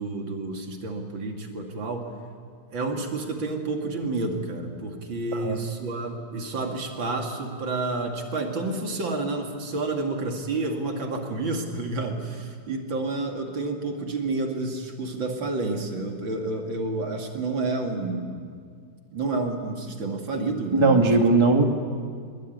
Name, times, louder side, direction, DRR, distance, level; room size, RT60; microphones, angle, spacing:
voice 1, 0.0-2.1 2.7-18.3 19.1-21.2, right 3 dB, 85° right, 3 dB, 3.2 m, -29 dB
voice 2, 20.7-21.6, right 3 dB, 15° right, 4 dB, 1.8 m, -19 dB
25.5 x 21.5 x 9.4 m, 2.1 s
omnidirectional pair, 2.0 m